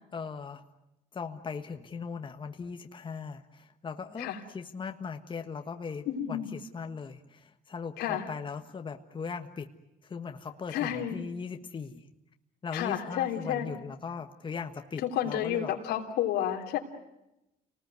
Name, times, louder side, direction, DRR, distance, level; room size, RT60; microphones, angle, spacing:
voice 1, 0.1-0.6 1.1-9.7 10.0-12.0 12.6-15.7, left 5 dB, 30° left, 5 dB, 1.5 m, -39 dB
voice 2, 6.1-6.5 8.0-8.3 10.7-11.2 12.7-13.7 15.0-16.8, left 10 dB, 85° left, 3 dB, 3.4 m, -31 dB
29.0 x 19.5 x 9.6 m, 0.91 s
cardioid pair, 110°, 17 cm